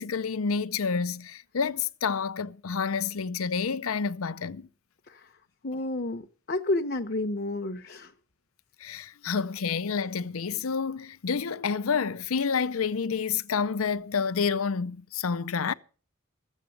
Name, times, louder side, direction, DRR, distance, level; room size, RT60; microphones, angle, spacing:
voice 1, 0.0-4.7 8.8-15.7, left 5 dB, 90° left, 0.6 m, -29 dB
voice 2, 5.6-8.1, left 2 dB, 45° left, 0.9 m, -30 dB
14.0 x 8.2 x 7.8 m
head